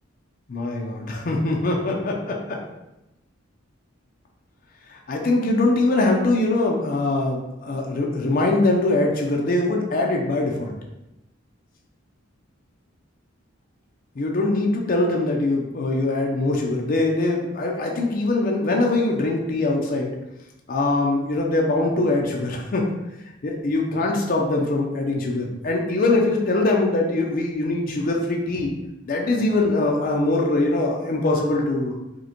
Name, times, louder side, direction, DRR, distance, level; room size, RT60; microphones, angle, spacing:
voice 1, 0.5-2.6 4.9-10.7 14.2-20.2 20.7-22.9 23.4-28.7 29.1-31.9, left 2 dB, 45° left, 0 dB, 0.4 m, -22 dB
5.0 x 2.1 x 2.9 m, 0.94 s
head